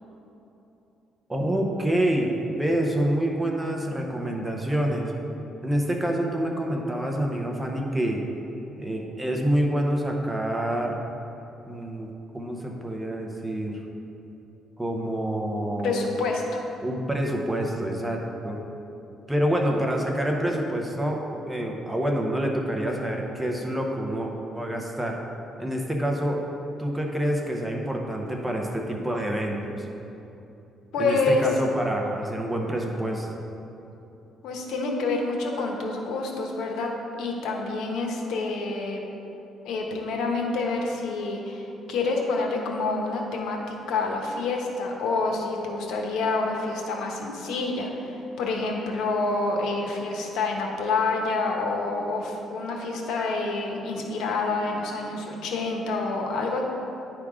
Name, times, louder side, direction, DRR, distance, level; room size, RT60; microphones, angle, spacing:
voice 1, 1.3-5.1 5.6-8.2 8.8-11.0 11.6-12.1 12.3-13.8 14.8-16.1 16.8-18.6 19.3-25.2 25.6-26.4 26.8-29.9 31.0-33.3, right 1 dB, 10° right, 0 dB, 0.7 m, -27 dB
voice 2, 15.8-16.6 30.9-31.5 34.4-36.9 37.2-39.0 39.6-56.6, left 3 dB, 80° left, 1 dB, 1.0 m, -27 dB
10.0 x 3.6 x 4.8 m, 3.0 s
cardioid pair, 145°, 0 cm